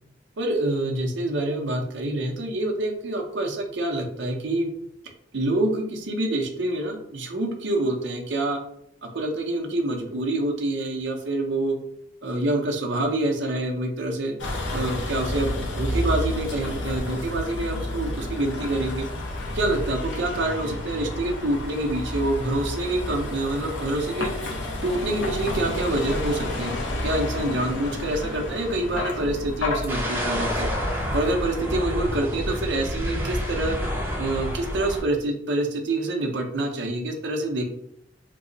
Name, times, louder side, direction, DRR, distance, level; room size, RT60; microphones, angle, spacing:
voice 1, 0.4-4.7 5.3-8.6 9.0-11.8 12.2-14.4 14.7-19.1 19.5-24.3 24.8-26.7 27.0-30.7 31.1-33.8 34.2-37.6, right 1 dB, 70° right, 2 dB, 0.6 m, -26 dB
Vehicle, 14.4-31.3, left 1 dB, 70° left, 0.7 m, -31 dB
sound 1, 29.9-35.0, equal, 10° right, 0.6 m, -28 dB
3.0 x 2.0 x 3.8 m, 0.74 s
head